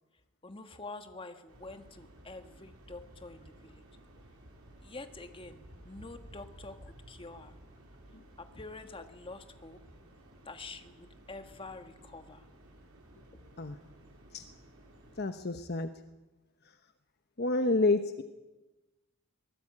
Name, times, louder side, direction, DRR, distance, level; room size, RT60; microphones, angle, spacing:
voice 1, 0.4-3.8 4.8-5.6 5.8-7.5 8.4-9.8 10.4-12.5, left 3 dB, 25° left, 7 dB, 1.7 m, -47 dB
sound 1, 1.5-15.2, right 1 dB, 85° right, 5.9 m, -55 dB
voice 2, 15.2-15.9 17.4-18.2, left 2 dB, 50° left, 8 dB, 1.0 m, -28 dB
23.0 x 18.5 x 8.8 m, 1.1 s
head